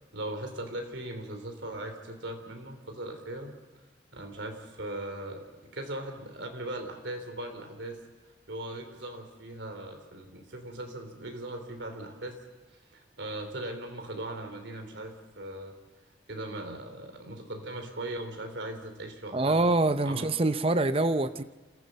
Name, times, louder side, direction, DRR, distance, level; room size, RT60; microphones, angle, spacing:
voice 1, 0.1-3.5 4.1-5.4 5.7-8.0 8.5-12.4 12.7-15.7 16.3-19.7 20.0-20.3, right 1 dB, 75° right, 3.3 m, -39 dB
voice 2, 19.3-21.4, right 2 dB, 30° right, 0.6 m, -25 dB
28.0 x 14.5 x 7.6 m
head